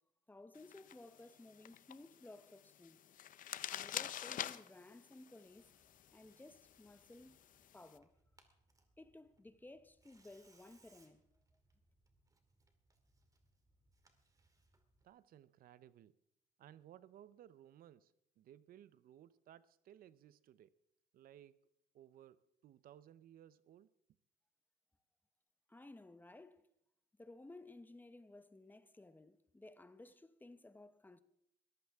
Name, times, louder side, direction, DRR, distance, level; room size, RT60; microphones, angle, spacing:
voice 1, 0.3-3.0 3.7-5.7 6.1-7.4 7.7-8.1 9.0-11.2 25.7-26.6 27.2-31.2, left 2 dB, 10° left, 0.9 m, -57 dB
sound 1, 0.5-8.0, left 11 dB, 55° left, 0.7 m, -48 dB
Tearing, 5.5-15.1, right 2 dB, 20° right, 2.2 m, -74 dB
voice 2, 15.0-16.1 16.6-20.8 21.1-21.6 21.9-23.9, right 11 dB, 60° right, 0.6 m, -60 dB
22.0 x 14.5 x 3.5 m
cardioid pair, 110°, 17 cm